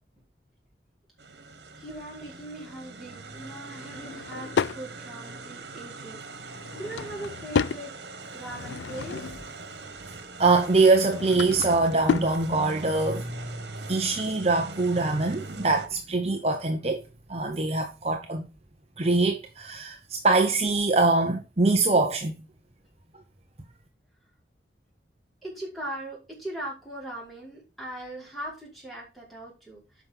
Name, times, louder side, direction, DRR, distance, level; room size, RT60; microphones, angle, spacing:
sound 1, 1.2-15.9, right 3 dB, 75° right, 1.7 m, -41 dB
voice 1, 1.7-7.9 8.3-9.3 25.4-30.0, right 1 dB, ahead, 5.1 m, -40 dB
Drawer open or close / Wood, 3.8-4.8 6.5-7.8 8.4-9.5 10.8-12.4, left 6 dB, 85° left, 0.4 m, -31 dB
voice 2, 10.4-13.2 13.9-17.0 17.3-18.5 19.0-22.3, right 3 dB, 35° right, 0.9 m, -23 dB
8.5 x 6.0 x 5.5 m
head